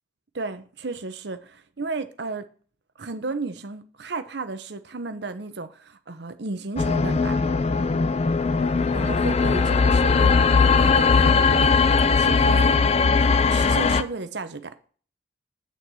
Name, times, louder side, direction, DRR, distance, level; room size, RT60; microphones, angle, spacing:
voice 1, 0.3-2.5 3.0-7.4 8.9-12.9 13.2-14.7, right 3 dB, 60° right, 0.8 m, -34 dB
sound 1, 6.8-14.0, left 4 dB, 35° left, 0.3 m, -19 dB
8.4 x 4.2 x 6.1 m
head